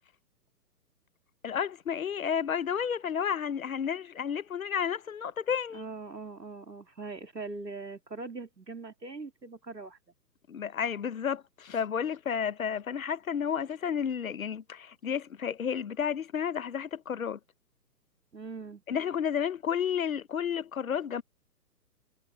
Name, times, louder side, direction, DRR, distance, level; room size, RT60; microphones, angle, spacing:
voice 1, 1.4-5.8 10.5-17.4 18.9-21.2, left 8 dB, 55° left, 1.0 m, -31 dB
voice 2, 5.7-10.0 18.3-18.8, right 3 dB, 85° right, 2.2 m, -41 dB
figure-of-eight pair, 125°, 48 cm